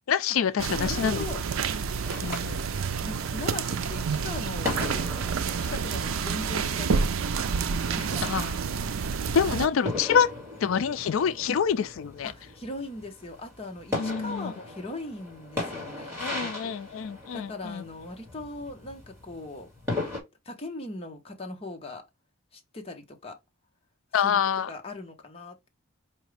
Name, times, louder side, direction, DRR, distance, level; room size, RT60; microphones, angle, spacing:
voice 1, 0.1-1.3 2.2-2.6 8.2-8.5 9.3-10.3 10.6-12.3 14.0-14.5 16.2-17.8 24.1-24.7, left 7 dB, 75° left, 0.4 m, -26 dB
sound 1, 0.6-9.7, right 6 dB, 75° right, 0.4 m, -29 dB
voice 2, 0.7-1.4 3.0-5.0 5.6-7.6 7.9-8.6 12.2-16.7 17.3-19.7 20.4-22.0 22.5-23.4 24.2-24.4 24.7-25.7, left 2 dB, 25° left, 1.0 m, -39 dB
sound 2, 2.0-20.2, left 2 dB, 10° right, 2.2 m, -38 dB
4.9 x 2.7 x 3.3 m
head